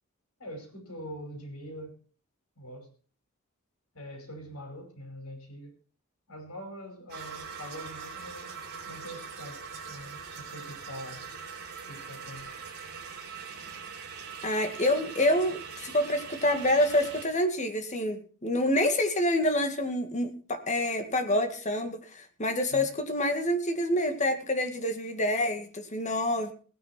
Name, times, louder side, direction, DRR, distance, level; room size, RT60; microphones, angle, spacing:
voice 1, 0.4-1.9 2.6-2.9 3.9-5.7 6.3-9.6 9.9-11.2 11.9-12.5 22.7-22.9, equal, 75° left, 4 dB, 5.5 m, -43 dB
sound 1, 7.1-17.3, right 6 dB, 50° right, 4.3 m, -42 dB
voice 2, 14.4-26.5, left 1 dB, 35° left, 6 dB, 2.2 m, -27 dB
18.0 x 9.8 x 4.5 m, 0.39 s
head